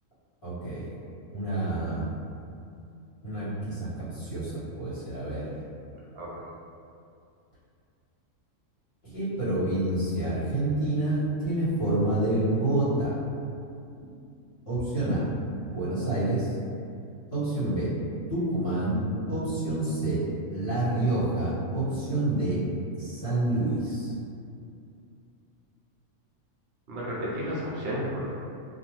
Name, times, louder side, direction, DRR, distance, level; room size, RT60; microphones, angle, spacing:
voice 1, 0.4-0.9 1.3-2.1 3.2-5.5 9.0-13.2 14.7-15.2 15.7-16.5 17.3-17.9 18.3-19.0 19.3-20.2 20.5-22.6 22.9-24.1, right 2 dB, 50° left, -11 dB, 1.2 m, -28 dB
voice 2, 26.9-28.3, equal, 60° right, -6 dB, 0.6 m, -32 dB
2.4 x 2.3 x 3.0 m, 2.5 s
omnidirectional pair, 1.4 m